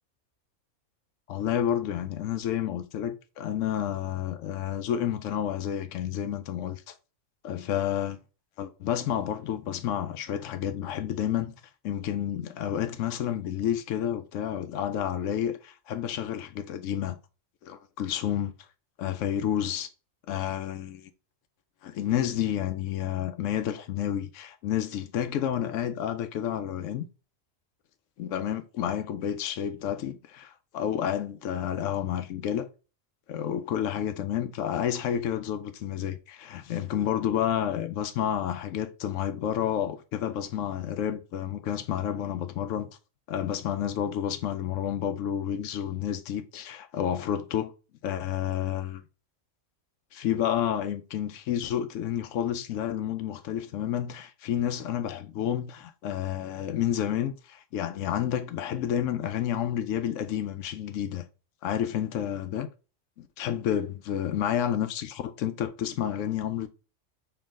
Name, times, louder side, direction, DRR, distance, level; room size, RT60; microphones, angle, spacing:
voice 1, 1.3-6.9 7.4-8.2 8.6-11.5 11.8-17.2 17.6-18.5 19.0-19.9 20.3-21.1 21.8-27.1 28.2-32.7 33.3-42.9 43.3-47.7 48.0-49.0 50.1-61.2 61.6-62.7 63.2-66.7, left 10 dB, 85° left, 0.9 m, -30 dB
4.6 x 3.0 x 3.6 m
omnidirectional pair, 1.3 m